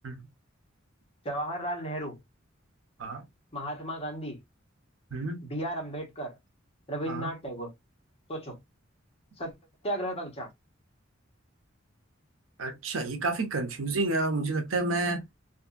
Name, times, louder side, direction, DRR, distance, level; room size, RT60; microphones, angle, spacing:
voice 1, 1.2-2.2 3.5-4.4 5.4-6.4 6.9-7.7 8.3-8.6 9.4-9.5 9.8-10.5, right 1 dB, 30° left, 1.2 m, -34 dB
voice 2, 5.1-5.4 7.1-7.3 12.6-15.3, right 2 dB, 85° right, 0.7 m, -30 dB
2.7 x 2.6 x 2.4 m
head